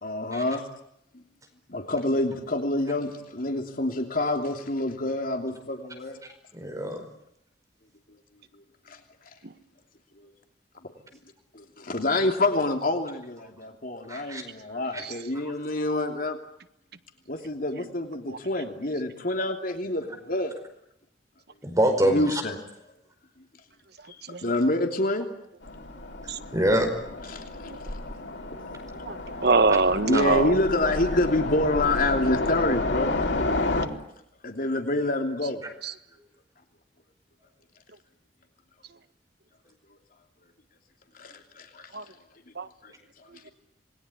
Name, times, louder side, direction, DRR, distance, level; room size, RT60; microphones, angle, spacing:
voice 1, 0.0-0.6 1.1-1.2 1.7-6.2 8.9-9.0 10.2-10.3 11.5-16.4 17.3-20.5 22.0-22.6 24.1-25.2 27.2-27.8 28.9-29.4 30.1-33.2 34.4-35.6 41.1-41.9 42.8-42.9 43.2-43.4, left 2 dB, 55° left, 5 dB, 3.0 m, -27 dB
voice 2, 6.5-7.0 14.1-14.4 21.6-22.4 26.5-26.9, right 1 dB, 20° right, 5 dB, 5.0 m, -24 dB
Train, 25.6-33.9, left 2 dB, 90° left, 4.5 m, -31 dB
voice 3, 29.0-30.6 41.9-42.0 42.5-42.7, right 3 dB, 65° right, 10 dB, 1.6 m, -23 dB
27.0 x 21.5 x 9.7 m, 0.78 s
head